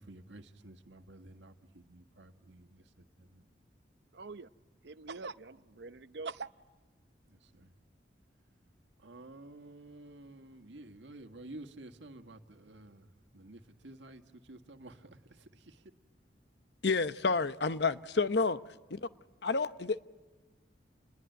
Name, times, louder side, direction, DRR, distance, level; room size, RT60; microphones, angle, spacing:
voice 1, 0.0-2.8 3.2-3.4 7.3-7.7 9.0-13.0 13.3-14.2 14.5-15.8, right 2 dB, 90° right, 1.7 m, -51 dB
voice 2, 4.1-4.5 4.8-6.5, right 4 dB, 70° right, 0.8 m, -43 dB
voice 3, 16.8-18.6 18.9-19.1 19.4-20.0, left 4 dB, 70° left, 0.9 m, -29 dB
29.5 x 21.5 x 9.2 m
head